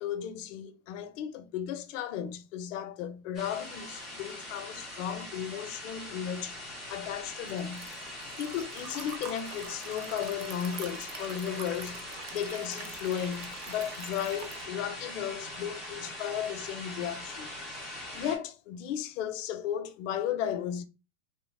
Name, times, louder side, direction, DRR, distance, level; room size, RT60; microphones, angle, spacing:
voice 1, 0.0-6.6 6.9-12.0 12.3-17.5 17.9-20.8, left 9 dB, 60° left, 0.5 m, -35 dB
sound 1, 3.3-18.4, left 1 dB, ahead, 0.4 m, -42 dB
Liquid, 6.4-14.7, right 7 dB, 90° right, 0.7 m, -46 dB
2.9 x 2.1 x 3.3 m
supercardioid pair, 145°, 44 cm